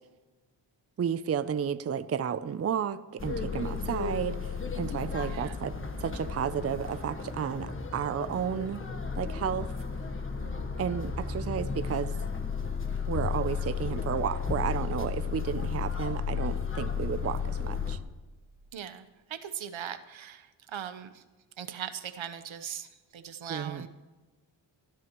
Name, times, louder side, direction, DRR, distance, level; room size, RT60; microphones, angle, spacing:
voice 1, 1.0-8.8 9.1-9.7 10.8-12.2 13.1-18.0 23.5-23.9, right 8 dB, 35° right, 13 dB, 0.5 m, -32 dB
sound 1, 3.2-18.0, left 5 dB, 25° left, 1.3 m, -33 dB
voice 2, 5.2-5.6 18.7-21.2 21.6-23.9, right 9 dB, 75° right, 10 dB, 1.0 m, -40 dB
26.0 x 10.5 x 3.1 m, 1.2 s
cardioid pair, 95°, 48 cm